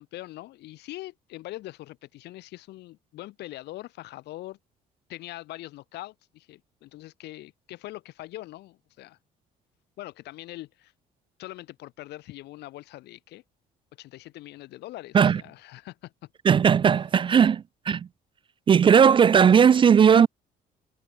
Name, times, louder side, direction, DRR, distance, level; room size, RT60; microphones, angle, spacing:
voice 1, 0.0-4.6 5.1-9.2 10.0-10.9 11.4-13.4 14.0-16.3, left 17 dB, 80° left, 3.8 m, -42 dB
voice 2, 16.5-18.1 18.7-20.3, right 7 dB, 30° right, 0.4 m, -17 dB
cardioid pair, 110°, 17 cm